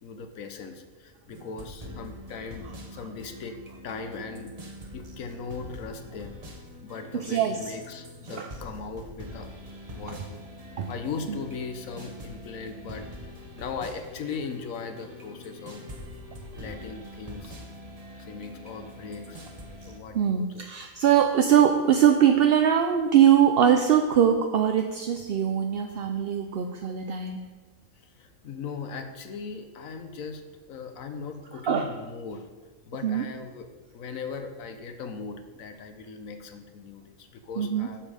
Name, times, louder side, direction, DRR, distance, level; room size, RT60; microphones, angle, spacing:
voice 1, 0.0-3.6 3.8-6.3 6.8-9.5 9.9-10.4 10.9-15.8 16.5-17.6 18.2-19.5 19.9-20.7 28.2-30.4 30.7-32.5 32.9-38.1, left 5 dB, 75° left, 7 dB, 1.2 m, -39 dB
sound 1, 1.3-20.0, left 1 dB, 30° right, 1.1 m, -44 dB
voice 2, 7.1-7.6 8.3-8.5 10.8-10.9 11.3-11.4 20.1-27.4 31.6-31.9 33.0-33.2 37.6-37.9, right 9 dB, 60° right, 5 dB, 0.6 m, -22 dB
7.3 x 7.2 x 5.0 m, 1.3 s
omnidirectional pair, 1.5 m